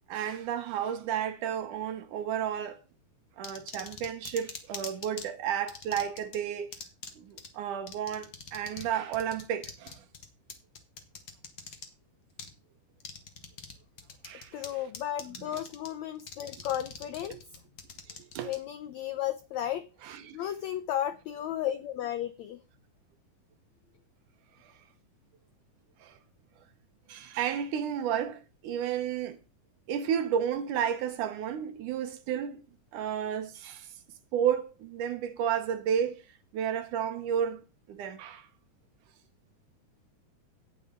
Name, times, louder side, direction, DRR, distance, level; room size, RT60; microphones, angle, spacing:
voice 1, 0.1-2.8 3.4-6.8 7.2-10.0 14.2-14.7 15.4-15.6 17.3-17.4 18.1-18.5 20.0-20.4 24.6-24.7 26.0-26.2 27.1-29.4 29.9-32.6 32.9-33.9 34.3-36.2 36.5-37.6 37.9-38.5, right 9 dB, 70° right, 2.2 m, -32 dB
sound 1, 3.4-5.3 5.7-6.4 6.7-7.1 7.4-7.5 7.9-8.9 9.1-11.9 12.4-12.5 13.0-13.7 14.0-14.7 14.9-15.9 16.2-18.6, left 6 dB, 45° left, 1.6 m, -42 dB
voice 2, 14.5-17.4 18.4-19.8 20.3-22.6, left 11 dB, 80° left, 1.6 m, -34 dB
16.0 x 8.3 x 3.8 m
omnidirectional pair, 4.1 m